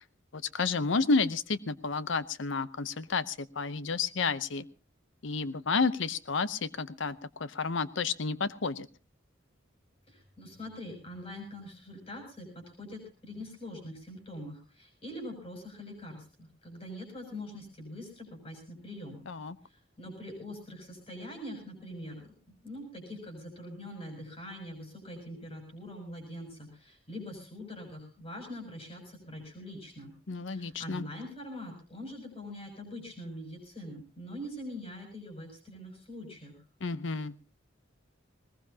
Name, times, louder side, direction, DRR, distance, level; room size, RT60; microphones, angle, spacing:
voice 1, 0.3-4.7 5.2-8.9 19.3-19.6 30.3-31.1 36.8-37.5, left 4 dB, 70° left, 15 dB, 0.8 m, -31 dB
voice 2, 10.1-19.2 20.0-30.1 30.5-36.6, left 1 dB, 30° left, 2 dB, 6.7 m, -43 dB
20.0 x 20.0 x 2.8 m, 0.34 s
head